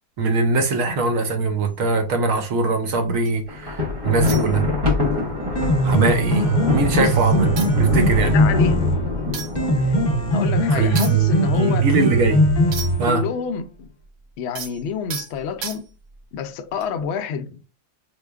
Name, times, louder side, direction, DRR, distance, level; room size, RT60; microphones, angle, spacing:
voice 1, 0.2-4.7 5.8-7.5 7.8-8.3 10.7-12.4 13.0-13.2, right 3 dB, 65° right, 0.9 m, -21 dB
sound 1, 1.7-3.5 4.2-5.1 5.4-5.6 5.9-6.8 7.2-7.3 7.6-13.2 13.5-16.2 16.8-17.0, right 7 dB, 90° right, 1.3 m, -37 dB
Thunder, 3.5-10.7, left 3 dB, 30° right, 0.8 m, -25 dB
Piano, 5.4-13.4, right 1 dB, 40° left, 0.9 m, -20 dB
voice 2, 8.2-8.8 9.8-10.0 10.3-11.9 13.0-13.9 14.4-15.9 16.3-17.6, left 7 dB, 85° left, 0.6 m, -28 dB
4.8 x 2.2 x 2.3 m
omnidirectional pair, 1.7 m